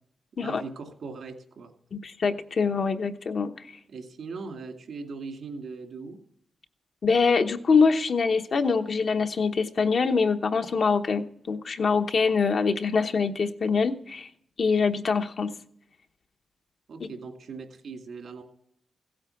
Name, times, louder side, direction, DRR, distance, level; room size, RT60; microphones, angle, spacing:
voice 1, 0.4-1.7 3.9-6.2 16.9-18.4, right 4 dB, 75° right, 4 dB, 2.3 m, -39 dB
voice 2, 1.9-3.5 7.0-14.3 14.6-15.5, left 5 dB, 60° left, 5 dB, 1.0 m, -24 dB
16.0 x 8.9 x 5.9 m, 0.67 s
cardioid pair, 75°, 0 cm